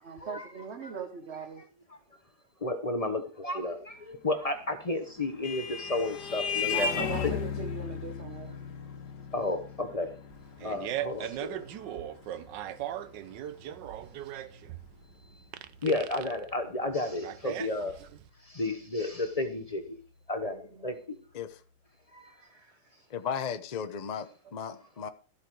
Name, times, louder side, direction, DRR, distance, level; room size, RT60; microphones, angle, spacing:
voice 1, 0.0-1.6 6.7-8.6 17.4-18.1 20.4-20.9 22.4-23.1, right 5 dB, 45° right, 1.0 m, -41 dB
voice 2, 2.6-7.3 9.3-10.2 10.6-11.6 15.8-17.9 18.4-20.0 20.3-21.2 22.1-22.4, left 2 dB, 35° left, 0.6 m, -32 dB
Vehicle horn car horn honking, 4.8-13.8, left 6 dB, 55° left, 1.7 m, -36 dB
Fart, 10.3-18.3, right 12 dB, 70° right, 1.3 m, -38 dB
voice 3, 23.1-25.1, left 7 dB, 85° left, 0.3 m, -35 dB
13.5 x 8.1 x 4.8 m
omnidirectional pair, 2.2 m